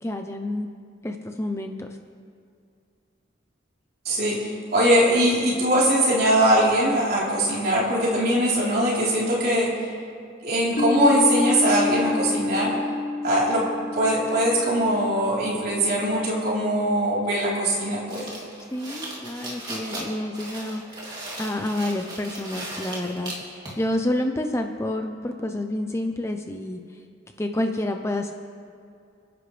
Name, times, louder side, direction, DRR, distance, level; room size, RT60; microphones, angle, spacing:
voice 1, 0.0-0.7 1.0-2.0 18.7-23.3 23.8-26.8 27.4-28.3, left 1 dB, 15° left, 5 dB, 0.6 m, -29 dB
voice 2, 4.1-4.4 4.7-9.7 10.4-12.8 13.2-13.7 13.9-18.3, right 1 dB, 50° right, -6 dB, 3.9 m, -21 dB
Piano, 10.8-16.1, left 3 dB, 55° left, 3.0 m, -28 dB
sound 1, 18.1-23.9, right 1 dB, 20° right, 2.8 m, -37 dB
29.0 x 10.5 x 3.4 m, 2.4 s
head